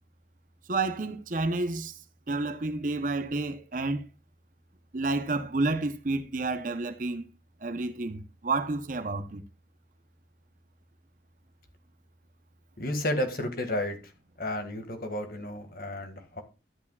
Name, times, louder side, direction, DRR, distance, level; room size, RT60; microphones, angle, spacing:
voice 1, 0.7-1.9 2.3-4.1 4.9-7.3 7.6-9.4, right 3 dB, 45° right, 0.7 m, -30 dB
voice 2, 12.8-14.0 14.4-16.4, left 1 dB, 55° left, 1.8 m, -32 dB
13.0 x 8.4 x 2.3 m
head